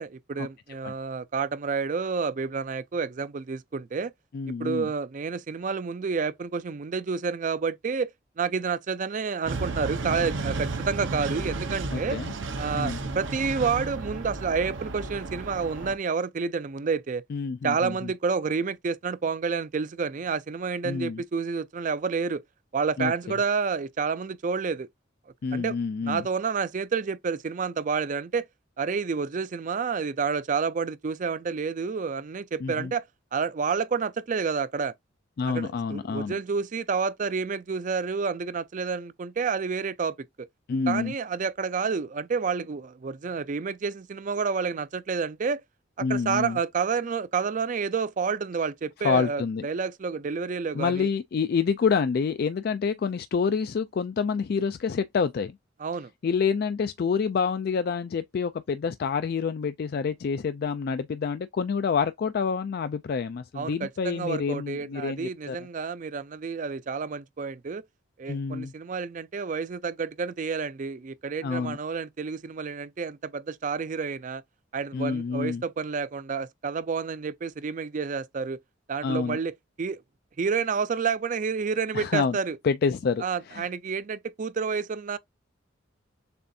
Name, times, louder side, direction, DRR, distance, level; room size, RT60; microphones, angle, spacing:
voice 1, 0.0-4.1 4.5-12.2 12.6-17.2 17.6-22.4 22.7-24.9 25.5-25.8 26.0-28.5 28.8-33.0 33.3-34.9 35.5-40.5 40.9-45.6 46.0-51.1 55.8-56.1 63.5-67.8 68.2-74.4 74.7-78.6 78.9-80.0 80.4-82.6 83.2-85.2, right 5 dB, 40° right, 0.4 m, -29 dB
voice 2, 4.3-4.9 11.9-12.3 12.7-13.0 17.3-18.1 20.8-21.2 23.0-23.1 25.4-26.2 32.6-32.9 35.4-36.3 40.7-41.1 46.0-46.6 49.0-49.7 50.7-55.5 56.2-65.6 68.3-68.7 71.4-71.8 74.9-75.6 79.0-79.4 81.9-82.4 82.6-83.7, left 5 dB, 50° left, 0.3 m, -27 dB
sound 1, 9.5-16.0, right 3 dB, 75° right, 0.8 m, -33 dB
6.8 x 2.5 x 2.7 m
head